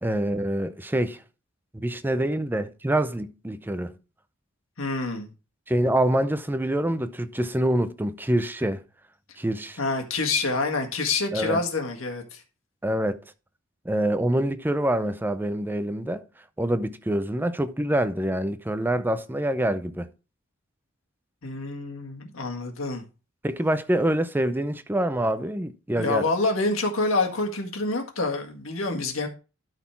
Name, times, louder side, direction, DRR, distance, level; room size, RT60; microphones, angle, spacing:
voice 1, 0.0-1.2 1.7-3.9 5.7-8.8 9.4-9.8 11.3-11.6 12.8-13.2 13.8-16.2 16.6-20.1 23.4-26.3, right 1 dB, 10° right, 0.5 m, -26 dB
voice 2, 4.8-5.3 9.8-12.4 21.4-23.0 26.0-29.3, left 3 dB, 70° left, 1.7 m, -27 dB
12.0 x 4.2 x 4.4 m
head